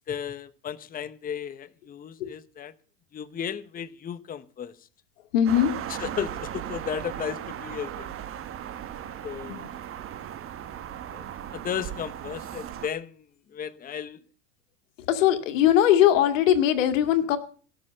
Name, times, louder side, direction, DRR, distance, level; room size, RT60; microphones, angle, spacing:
voice 1, 0.1-2.7 3.1-4.7 6.0-8.1 9.2-9.7 11.1-11.2 11.5-13.2 13.5-14.2, left 8 dB, 25° left, 0.9 m, -34 dB
voice 2, 5.3-5.7 9.5-9.6 15.1-17.4, left 11 dB, 80° left, 2.1 m, -20 dB
sound 1, 5.5-12.9, right 10 dB, 35° right, 1.3 m, -37 dB
17.5 x 6.7 x 7.5 m
hypercardioid pair, 105°, 38 cm